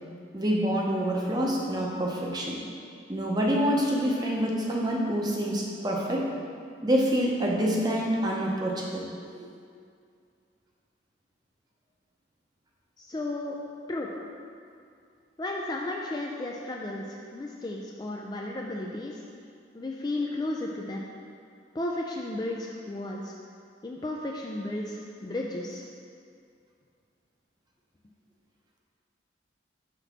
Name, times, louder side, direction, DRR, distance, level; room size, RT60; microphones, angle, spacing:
voice 1, 0.3-2.6 3.1-6.3 6.8-9.1 9.3-9.5, equal, 20° right, -2 dB, 0.7 m, -27 dB
voice 2, 13.0-13.6 13.9-14.1 15.4-19.2 19.7-21.1 21.7-23.4 23.8-25.8, left 2 dB, 20° left, -1 dB, 0.3 m, -34 dB
5.9 x 4.0 x 5.8 m, 2.3 s
head